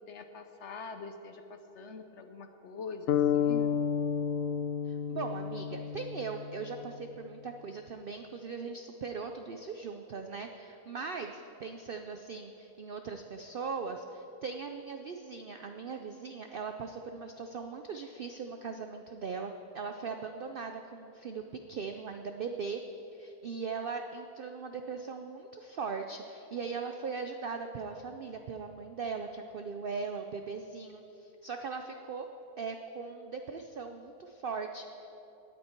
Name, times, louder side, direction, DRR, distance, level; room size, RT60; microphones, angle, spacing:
voice 1, 0.0-3.7, left 4 dB, 60° left, 7 dB, 0.9 m, -44 dB
sound 1, 3.1-7.0, left 8 dB, 85° left, 0.5 m, -31 dB
voice 2, 4.8-21.4 21.7-22.8 23.1-32.3 32.6-35.1, right 5 dB, 80° right, 6 dB, 0.5 m, -39 dB
18.5 x 8.5 x 4.5 m, 2.9 s
omnidirectional pair, 1.6 m